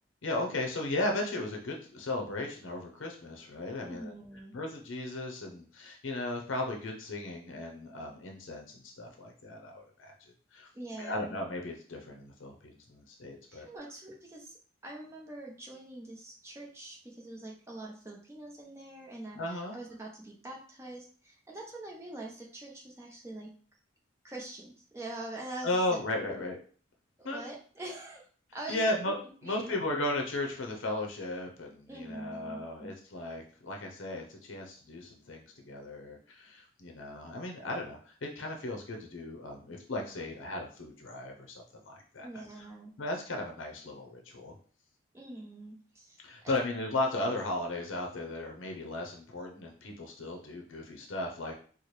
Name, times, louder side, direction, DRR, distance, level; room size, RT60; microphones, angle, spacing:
voice 1, 0.2-4.1 4.5-10.1 10.5-10.7 11.0-13.7 19.3-19.8 25.6-26.6 27.2-27.4 28.7-29.2 29.4-42.3 42.6-42.7 43.0-44.5 46.2-51.6, left 2 dB, 80° left, 2 dB, 0.7 m, -36 dB
voice 2, 3.8-4.5 10.7-11.4 13.5-14.5 14.8-23.5 24.2-26.4 27.2-28.2 28.5-29.1 29.4-29.8 31.9-32.9 42.2-42.9 45.1-46.7, right 2 dB, 15° right, -2 dB, 0.8 m, -44 dB
4.2 x 2.2 x 3.1 m, 0.43 s
head